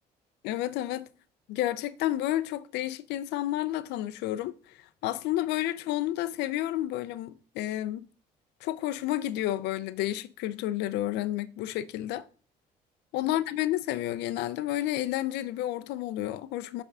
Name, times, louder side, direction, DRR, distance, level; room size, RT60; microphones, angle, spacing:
voice 1, 0.4-1.1 1.5-4.5 5.0-8.0 8.6-12.2 13.1-16.8, left 14 dB, 90° left, 0.5 m, -30 dB
7.8 x 3.5 x 3.6 m
cardioid pair, 110°, 17 cm